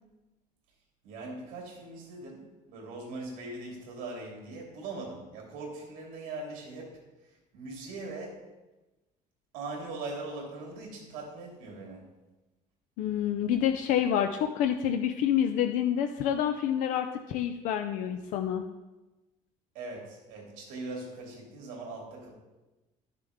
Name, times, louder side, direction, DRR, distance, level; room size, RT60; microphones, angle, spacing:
voice 1, 1.0-2.4 2.7-7.0 7.5-8.4 9.5-12.1 19.7-22.3, right 2 dB, 90° right, 0 dB, 2.8 m, -40 dB
voice 2, 13.0-18.6, left 9 dB, 65° left, 6 dB, 0.5 m, -28 dB
11.5 x 6.7 x 3.6 m, 1.1 s
cardioid pair, 175°, 14 cm